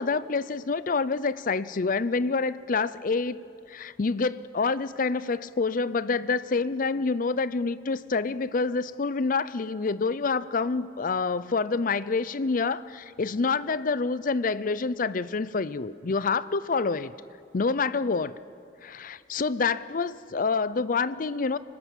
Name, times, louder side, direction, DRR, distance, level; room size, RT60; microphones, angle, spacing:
voice 1, 0.0-3.4 3.7-17.1 17.5-18.4 18.8-21.6, left 4 dB, 50° left, 16 dB, 0.5 m, -27 dB
25.5 x 18.0 x 7.3 m, 2.6 s
head